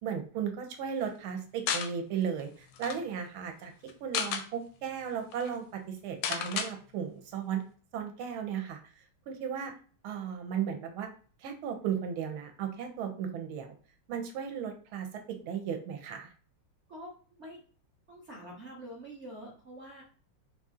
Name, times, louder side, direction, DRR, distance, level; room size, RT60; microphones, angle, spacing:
voice 1, 0.0-7.6 7.9-8.8 9.3-9.7 10.0-11.1 11.4-13.8 14.1-16.3, right 8 dB, 75° right, 4 dB, 1.5 m, -35 dB
sound 1, 1.7-1.9 2.4-2.5 2.7-3.0 3.9-4.5 5.0-5.1 5.3-5.5 6.2-6.7, left 7 dB, 75° left, 1.1 m, -32 dB
voice 2, 16.9-17.6 18.1-20.0, equal, 50° right, -3 dB, 0.8 m, -46 dB
4.3 x 2.7 x 3.6 m, 0.41 s
omnidirectional pair, 2.4 m